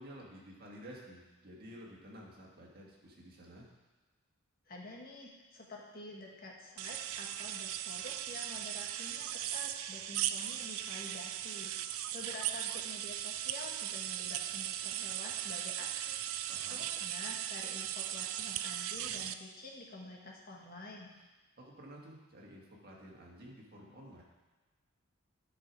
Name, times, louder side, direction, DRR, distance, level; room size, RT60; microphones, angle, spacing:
voice 1, 0.0-3.7 16.5-16.9 21.6-24.2, equal, 45° right, -3 dB, 1.9 m, -52 dB
voice 2, 4.7-21.1, left 2 dB, 45° left, -1 dB, 1.5 m, -49 dB
sound 1, 6.8-19.3, right 11 dB, 75° right, 0.4 m, -38 dB
10.5 x 5.7 x 4.7 m, 1.2 s
head